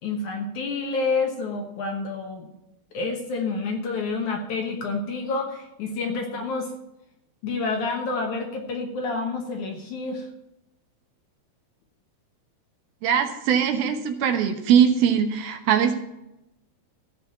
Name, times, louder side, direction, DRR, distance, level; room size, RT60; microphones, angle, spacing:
voice 1, 0.0-2.5 2.9-6.7 7.4-10.3, left 3 dB, 60° left, 2 dB, 2.2 m, -28 dB
voice 2, 13.0-15.9, right 8 dB, 75° right, 6 dB, 2.8 m, -21 dB
15.5 x 5.2 x 7.7 m, 0.88 s
omnidirectional pair, 4.6 m